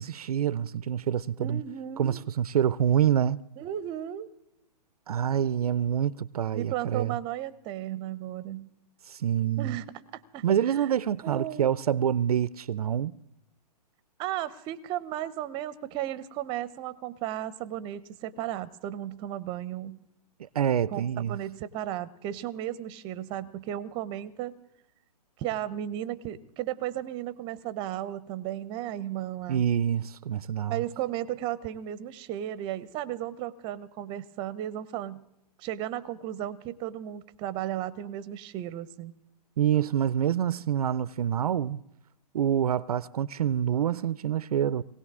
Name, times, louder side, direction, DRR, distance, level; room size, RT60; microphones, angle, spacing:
voice 1, 0.0-1.6 2.0-3.4 5.1-7.2 9.1-9.8 10.4-13.2 20.5-21.4 29.5-30.8 39.6-41.8 42.3-44.8, right 9 dB, 65° right, 0.5 m, -26 dB
voice 2, 1.4-2.2 3.6-4.3 6.5-8.7 9.6-9.8 10.1-10.9 11.2-11.8 14.2-20.0 20.9-24.6 25.4-29.6 30.7-35.2 35.6-39.1, right 12 dB, 20° right, 0.7 m, -35 dB
19.5 x 17.5 x 3.6 m
hypercardioid pair, 135°, 21 cm